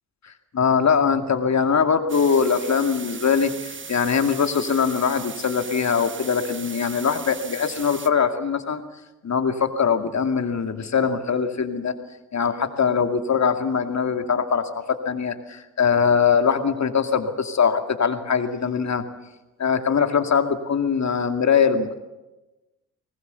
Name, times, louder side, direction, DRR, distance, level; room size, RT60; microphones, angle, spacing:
voice 1, 0.2-8.8 9.2-11.9 12.3-19.0 19.6-22.0, left 6 dB, 45° left, 7 dB, 2.3 m, -22 dB
sound 1, 2.1-8.1, right 5 dB, 30° right, 1.2 m, -38 dB
23.5 x 19.0 x 6.9 m, 1.1 s
hypercardioid pair, 50°, 39 cm